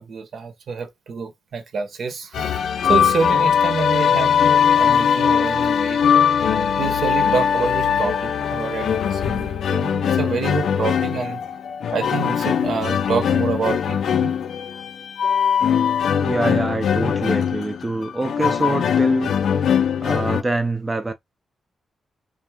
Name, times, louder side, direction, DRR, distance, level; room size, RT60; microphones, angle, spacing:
voice 1, 0.0-6.2 6.8-11.4 11.9-14.4, right 5 dB, 60° right, 0.9 m, -27 dB
sound 1, 2.3-20.4, left 8 dB, 75° left, 0.4 m, -20 dB
voice 2, 16.2-19.7 20.0-21.1, right 2 dB, 20° right, 0.4 m, -25 dB
3.4 x 2.6 x 3.4 m
wide cardioid pair, 150°, 0 cm